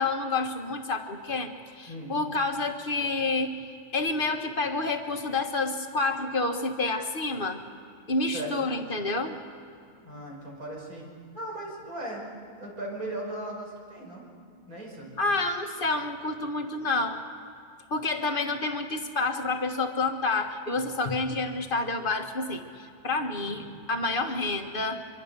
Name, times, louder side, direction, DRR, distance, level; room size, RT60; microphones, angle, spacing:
voice 1, 0.0-3.5 3.9-7.6 8.1-9.4 15.2-17.2 17.9-25.0, left 3 dB, 35° left, 5 dB, 1.6 m, -29 dB
voice 2, 10.0-12.2 12.6-14.3 14.7-15.1 23.5-23.7, right 1 dB, 65° right, -1 dB, 5.7 m, -38 dB
25.0 x 24.0 x 6.8 m, 2.4 s
omnidirectional pair, 1.6 m